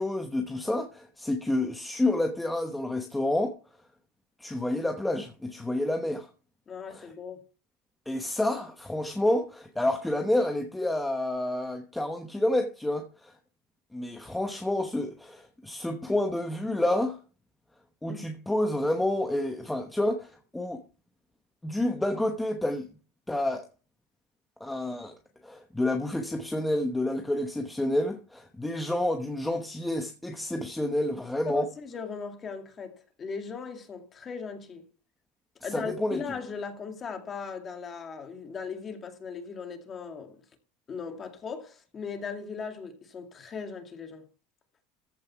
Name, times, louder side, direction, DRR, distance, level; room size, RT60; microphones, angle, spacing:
voice 1, 0.0-3.5 4.4-6.3 6.9-7.1 8.1-13.3 13.9-17.2 18.0-20.8 21.6-22.9 23.3-23.7 24.6-25.1 25.4-31.7 35.7-36.2, left 1 dB, 5° left, 1.0 m, -29 dB
voice 2, 6.7-7.4 18.1-18.3 31.5-34.8 35.6-40.4 40.9-44.3, left 5 dB, 20° left, 2.2 m, -38 dB
14.5 x 5.3 x 5.8 m
supercardioid pair, 150°, 0 cm